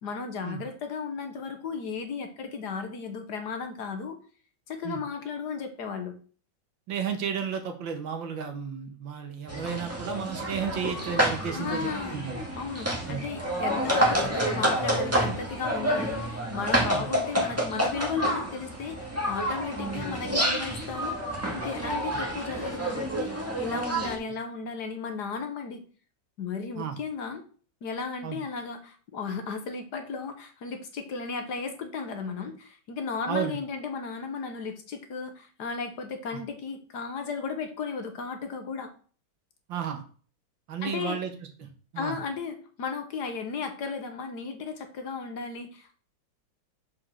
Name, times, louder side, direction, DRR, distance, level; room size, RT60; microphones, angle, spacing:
voice 1, 0.0-4.2 4.7-6.2 11.5-12.2 12.6-21.2 21.5-25.8 26.4-27.4 27.8-38.9 40.8-41.2 42.0-45.9, left 5 dB, 60° left, 6 dB, 1.7 m, -35 dB
voice 2, 6.9-12.5 13.1-13.2 14.2-14.3 16.9-17.1 22.1-22.2 26.8-27.0 28.2-28.4 33.3-33.6 36.3-36.4 39.7-40.0 40.7-41.3 41.6-42.2, right 7 dB, 80° right, 5 dB, 2.1 m, -33 dB
sound 1, 9.5-24.2, right 1 dB, 10° right, 1.8 m, -29 dB
5.7 x 5.2 x 6.2 m, 0.41 s
omnidirectional pair, 2.1 m